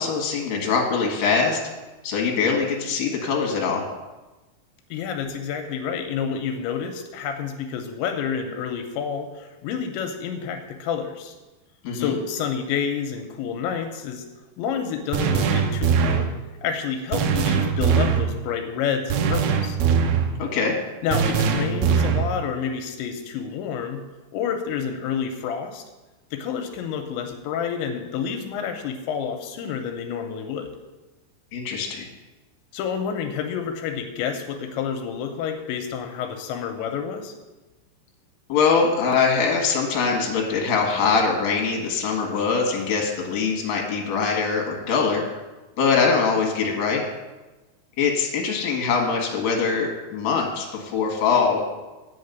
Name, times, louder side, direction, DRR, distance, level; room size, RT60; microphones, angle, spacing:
voice 1, 0.0-1.6 2.0-3.8 11.8-12.1 20.4-20.8 31.5-32.1 38.5-45.2 45.8-47.0 48.0-51.7, left 5 dB, 50° left, 1 dB, 2.4 m, -23 dB
voice 2, 4.9-11.4 11.9-14.3 14.6-16.3 16.6-19.8 21.0-24.0 24.3-25.8 26.3-30.7 32.7-37.3, left 7 dB, 85° left, 5 dB, 3.0 m, -29 dB
sound 1, 15.1-16.3 17.1-18.3 19.1-20.3 21.1-22.3, right 6 dB, 80° right, 2.3 m, -21 dB
8.7 x 5.5 x 8.0 m, 1.1 s
omnidirectional pair, 5.3 m